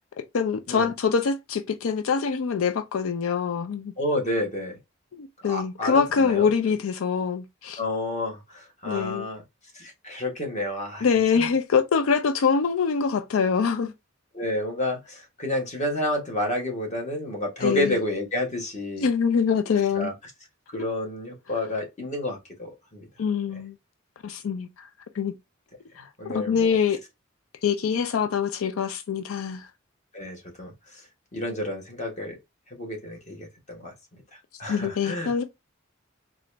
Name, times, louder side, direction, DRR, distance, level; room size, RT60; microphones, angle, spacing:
voice 1, 0.3-3.9 5.2-7.8 8.9-9.3 11.0-13.9 17.6-18.0 19.0-20.1 20.7-20.8 23.2-23.7 24.2-24.9 25.2-25.3 26.0-27.0 27.6-29.7 34.7-35.4, left 6 dB, 90° left, 0.4 m, -24 dB
voice 2, 4.0-4.8 5.4-6.5 7.8-9.4 9.7-11.1 11.3-11.5 14.3-19.1 19.9-20.1 20.7-23.1 23.5-23.6 26.2-26.7 30.1-31.0 31.3-32.4 32.7-34.2 34.6-35.3, left 1 dB, 35° left, 1.3 m, -30 dB
3.8 x 2.4 x 3.2 m
head